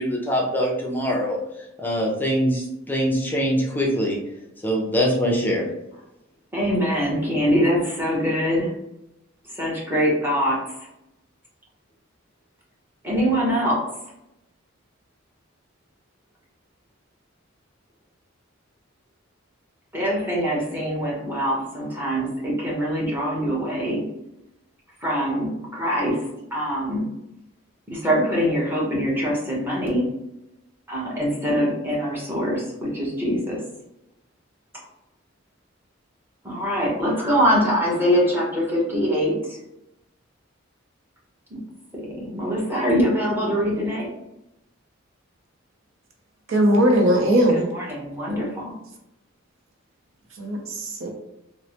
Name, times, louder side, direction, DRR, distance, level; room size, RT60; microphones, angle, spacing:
voice 1, 0.0-1.4 1.8-4.2 4.6-5.7, equal, 10° left, -3 dB, 0.5 m, -23 dB
voice 2, 6.5-8.7 9.5-10.8 13.0-13.8 19.9-24.0 25.0-26.2 26.5-27.1 27.9-30.0 30.9-33.6 36.4-39.6 41.5-41.6 41.9-44.1 47.7-48.7, equal, 10° right, -5 dB, 0.9 m, -23 dB
voice 3, 46.5-47.6 50.4-51.1, right 1 dB, 90° right, 1 dB, 0.7 m, -19 dB
3.1 x 2.0 x 2.8 m, 0.87 s
head